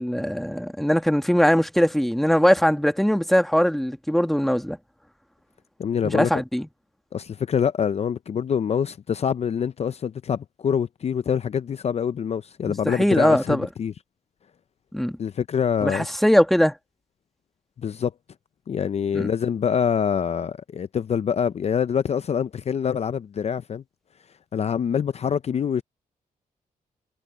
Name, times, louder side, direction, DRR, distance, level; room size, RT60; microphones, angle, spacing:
voice 1, 0.0-4.8 6.0-6.7 12.8-13.7 14.9-15.2 15.8-16.7 19.1-19.3, equal, ahead, 1.6 m, -21 dB
voice 2, 5.8-6.4 7.1-13.9 15.2-16.1 17.8-18.1 18.7-23.8 24.5-25.8, left 7 dB, 50° left, 0.5 m, -25 dB
cardioid pair, 90°, 14 cm